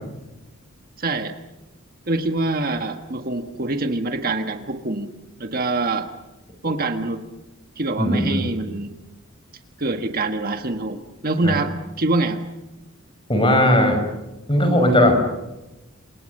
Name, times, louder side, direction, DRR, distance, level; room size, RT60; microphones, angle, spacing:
voice 1, 1.0-1.4 2.1-5.1 5.4-6.1 6.6-7.2 7.8-9.0 9.8-11.7 12.0-12.4, right 2 dB, 45° right, 6 dB, 1.6 m, -25 dB
voice 2, 8.0-8.4 11.4-11.6 13.3-14.0 14.5-15.2, left 1 dB, 25° left, 5 dB, 5.6 m, -17 dB
28.5 x 27.5 x 6.7 m, 1.0 s
head